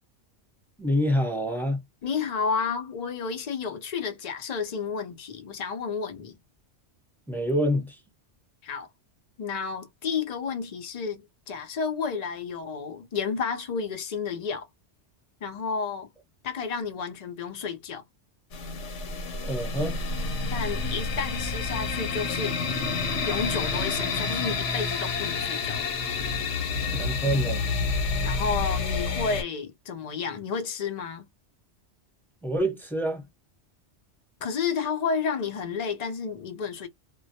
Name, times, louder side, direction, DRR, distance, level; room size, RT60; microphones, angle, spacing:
voice 1, 0.8-1.8 7.3-8.0 19.4-20.0 26.9-27.6 32.4-33.3, equal, ahead, 0.7 m, -26 dB
voice 2, 2.0-6.4 8.6-8.9 9.4-14.7 15.4-16.1 16.4-18.0 20.5-22.6 23.3-25.8 28.2-31.2 34.4-36.9, left 5 dB, 45° left, 0.6 m, -31 dB
sound 1, 18.5-29.4, left 4 dB, 90° left, 1.1 m, -29 dB
2.2 x 2.0 x 2.7 m
omnidirectional pair, 1.2 m